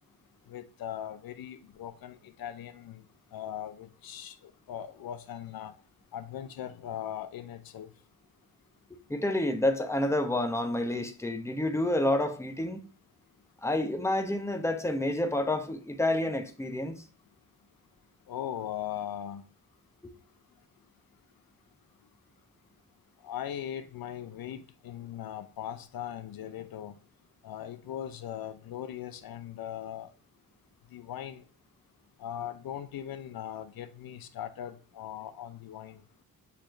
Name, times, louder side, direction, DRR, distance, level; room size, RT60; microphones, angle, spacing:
voice 1, 0.5-3.0 3.3-5.7 6.1-7.9 18.3-19.4 23.2-26.9 27.4-30.1 30.9-31.4 32.2-36.0, left 10 dB, 75° left, 0.5 m, -39 dB
voice 2, 9.1-12.8 13.6-17.0, left 1 dB, 10° left, 0.8 m, -29 dB
6.7 x 3.0 x 2.5 m
cardioid pair, 60°, 36 cm